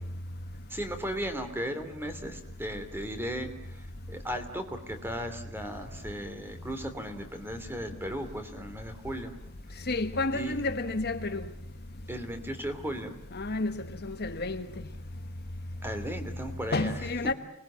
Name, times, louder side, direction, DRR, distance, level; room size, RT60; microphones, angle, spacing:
voice 1, 0.7-9.3 10.3-10.6 12.1-13.1 15.8-16.9 17.2-17.3, equal, 10° right, 3.0 m, -36 dB
voice 2, 9.9-11.4 13.3-13.7 14.0-14.6 16.7-17.3, left 2 dB, 50° left, 1.3 m, -30 dB
29.0 x 20.5 x 8.7 m
head